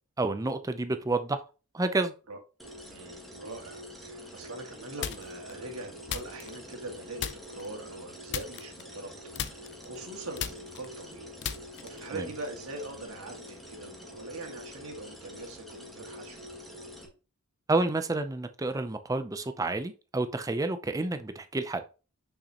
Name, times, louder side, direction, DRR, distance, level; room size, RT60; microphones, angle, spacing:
voice 1, 0.2-1.4 1.7-2.1 12.1-12.3 17.7-21.8, right 2 dB, 15° right, 0.4 m, -29 dB
sound 1, 2.6-17.1, left 1 dB, ahead, 1.4 m, -46 dB
voice 2, 2.9-11.3 11.8-16.4, right 2 dB, 75° right, 1.9 m, -42 dB
sound 2, 5.0-5.5 6.1-6.9 7.2-7.7 8.3-9.1 9.4-12.1, left 8 dB, 50° left, 0.5 m, -37 dB
6.4 x 5.9 x 2.9 m
head